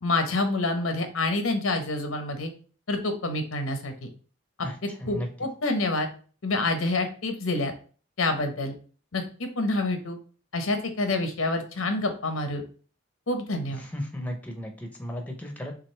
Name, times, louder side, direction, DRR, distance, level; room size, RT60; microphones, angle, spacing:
voice 1, 0.0-2.5 2.9-4.1 5.1-6.1 6.4-7.7 8.2-8.7 9.1-10.2 10.5-12.6 13.3-13.8, left 2 dB, 90° left, 6 dB, 1.0 m, -27 dB
voice 2, 4.6-5.3 13.8-15.7, equal, 5° left, 3 dB, 0.7 m, -35 dB
6.0 x 2.5 x 3.2 m, 0.39 s
head